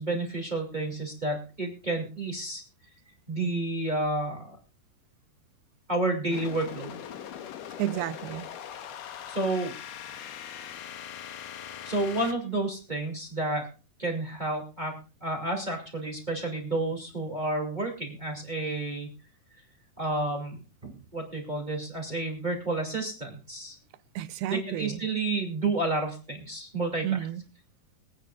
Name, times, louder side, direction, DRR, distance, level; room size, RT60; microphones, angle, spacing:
voice 1, 0.0-2.6 3.3-4.6 5.9-7.0 9.3-9.7 11.8-13.7 14.0-19.1 20.0-23.8 24.5-27.1, right 2 dB, 15° right, 1.7 m, -30 dB
sound 1, 6.3-12.4, left 9 dB, 70° left, 2.5 m, -41 dB
voice 2, 7.8-8.5 24.2-25.1 27.0-27.4, right 12 dB, 90° right, 2.7 m, -31 dB
23.5 x 9.4 x 2.4 m
omnidirectional pair, 4.4 m